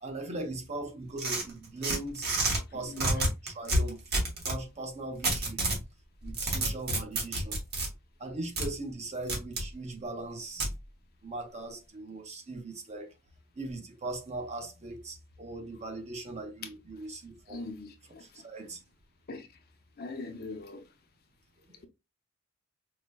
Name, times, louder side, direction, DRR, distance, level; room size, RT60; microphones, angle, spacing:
voice 1, 0.0-2.4 2.7-4.0 4.4-5.6 6.2-7.6 8.2-10.7 11.2-13.1 13.6-17.7 18.2-18.8 21.7-21.9, right 2 dB, 35° right, 0.7 m, -39 dB
sound 1, 1.2-2.6 3.0-4.6 5.2-5.8 6.2-7.9 8.6-8.7 9.3-9.7 10.6-10.7, right 1 dB, 50° right, 1.2 m, -29 dB
voice 2, 17.5-18.2 19.3-19.5 20.0-20.8, left 3 dB, 50° left, 0.6 m, -41 dB
4.8 x 2.1 x 2.2 m
head